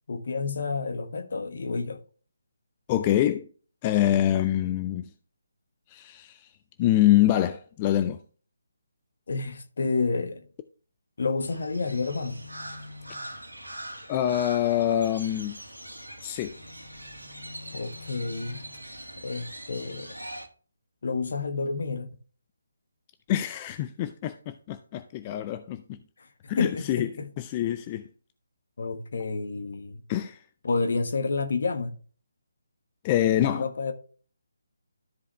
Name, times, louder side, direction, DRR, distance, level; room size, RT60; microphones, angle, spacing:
voice 1, 0.1-2.0 9.3-10.4 11.2-12.4 17.7-18.6 19.2-20.2 21.0-22.1 26.2-26.3 26.6-27.3 28.8-30.0 30.6-32.0 33.4-33.9, left 4 dB, 55° left, 1.3 m, -30 dB
voice 2, 2.9-3.5 3.8-5.1 5.9-6.5 6.8-8.2 14.1-15.6 16.2-16.6 23.3-26.0 26.5-27.1 27.4-28.0 30.1-30.4 33.0-33.7, left 12 dB, 25° left, 0.5 m, -25 dB
Crow, 11.4-20.5, equal, 85° right, 1.8 m, -42 dB
13.0 x 4.9 x 3.3 m
figure-of-eight pair, 145°, 0 cm